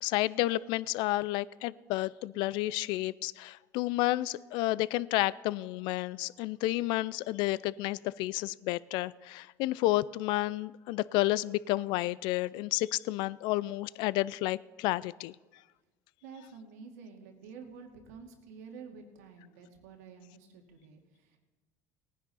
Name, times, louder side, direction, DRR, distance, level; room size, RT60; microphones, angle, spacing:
voice 1, 0.0-15.3, left 18 dB, 70° left, 0.4 m, -31 dB
voice 2, 16.2-21.4, right 5 dB, 90° right, 2.1 m, -49 dB
18.5 x 10.0 x 4.1 m
supercardioid pair, 85°, 8 cm